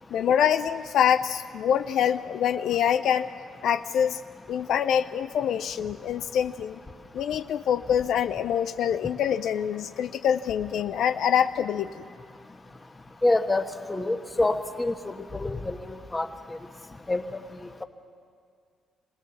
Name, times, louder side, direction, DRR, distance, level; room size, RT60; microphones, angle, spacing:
voice 1, 0.1-3.3 3.6-4.2 4.5-6.8 7.1-11.9, left 9 dB, 75° left, 10 dB, 0.5 m, -25 dB
voice 2, 13.2-13.6 13.9-16.3 17.1-17.2, left 2 dB, 20° left, 7 dB, 1.3 m, -26 dB
25.0 x 18.5 x 7.1 m, 2.1 s
cardioid pair, 90°, 0 cm